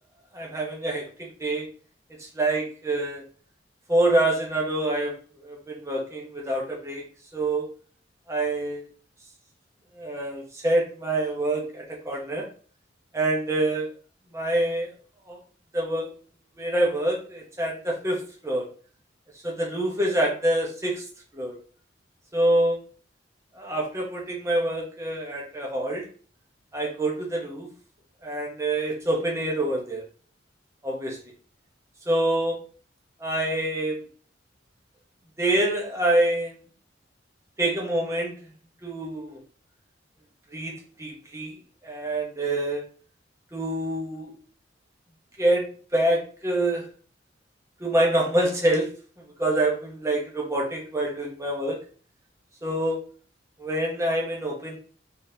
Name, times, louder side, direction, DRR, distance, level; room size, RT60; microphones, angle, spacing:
voice 1, 0.3-1.7 2.2-3.2 3.9-7.7 8.3-8.9 9.9-12.5 13.1-13.9 14.3-14.9 15.2-15.4 15.7-16.1 16.6-18.7 19.4-21.0 21.3-21.6 22.3-22.8 23.5-26.1 26.7-27.7 28.2-30.0 30.8-31.2 32.1-32.6 33.2-34.0 35.4-36.6 37.6-38.5 38.8-39.4 40.5-41.6 41.8-42.8 43.5-44.3 45.4-46.9 47.8-48.9 49.4-51.8 52.6-53.0 53.6-54.8, right 1 dB, 15° right, -1 dB, 0.9 m, -26 dB
4.0 x 3.6 x 2.7 m, 0.42 s
head